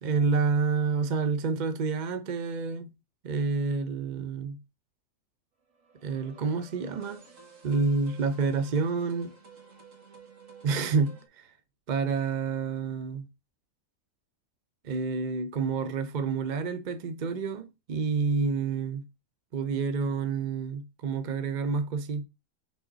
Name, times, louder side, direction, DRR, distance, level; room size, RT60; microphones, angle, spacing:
voice 1, 0.0-2.9 3.2-4.6 6.0-7.2 7.6-9.3 10.6-11.5 11.9-13.3 14.8-19.1 19.5-22.2, right 4 dB, 45° right, 0.7 m, -28 dB
sound 1, 5.7-11.3, right 5 dB, 65° right, 2.0 m, -53 dB
6.3 x 4.3 x 4.0 m
omnidirectional pair, 1.4 m